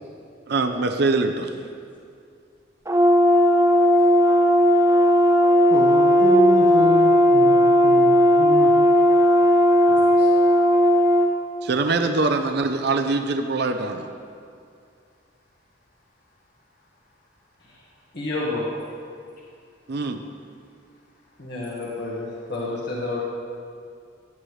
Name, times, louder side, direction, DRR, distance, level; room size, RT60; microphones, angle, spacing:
voice 1, 0.5-1.5 11.6-14.1 19.9-20.2, right 3 dB, 60° right, 6 dB, 0.6 m, -23 dB
Brass instrument, 2.9-11.3, equal, 15° right, 0.7 m, -16 dB
voice 2, 5.7-8.7 9.9-10.3, left 2 dB, 45° left, -1 dB, 0.9 m, -28 dB
voice 3, 18.1-18.6 21.4-23.2, left 2 dB, 65° left, -5 dB, 1.6 m, -29 dB
15.5 x 9.3 x 3.2 m, 2.3 s
head